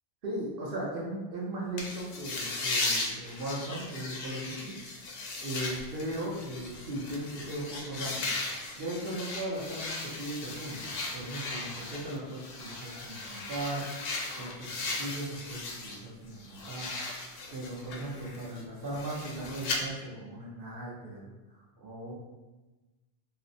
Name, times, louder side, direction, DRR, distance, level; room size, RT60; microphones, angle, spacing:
voice 1, 0.2-4.8 5.4-13.9 14.4-16.9 17.5-21.3 21.5-22.1, right 1 dB, 55° right, -5 dB, 0.9 m, -38 dB
sound 1, 1.8-16.0 16.3-19.8, left 3 dB, 65° left, 0.7 m, -37 dB
4.1 x 2.0 x 2.6 m, 1.2 s
omnidirectional pair, 1.2 m